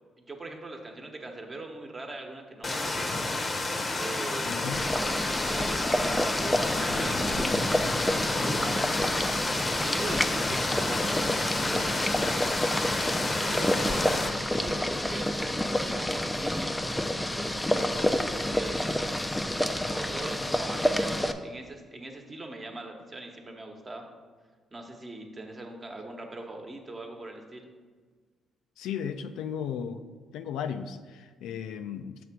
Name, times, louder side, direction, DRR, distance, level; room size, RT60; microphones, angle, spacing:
voice 1, 0.2-3.2 4.0-7.6 8.3-9.2 9.6-11.1 11.6-12.4 13.4-14.2 14.5-16.8 17.1-18.1 18.5-18.9 19.9-24.0 24.7-27.6, right 2 dB, 30° right, 3 dB, 1.0 m, -41 dB
sound 1, 2.6-14.3, left 2 dB, 30° left, 0.7 m, -30 dB
voice 2, 4.4-4.8 28.8-30.0 30.3-32.2, left 8 dB, 85° left, 9 dB, 0.4 m, -35 dB
Boiling, 4.7-21.3, left 1 dB, 10° left, 0.4 m, -29 dB
6.8 x 3.4 x 6.0 m, 1.5 s
cardioid pair, 90°, 0 cm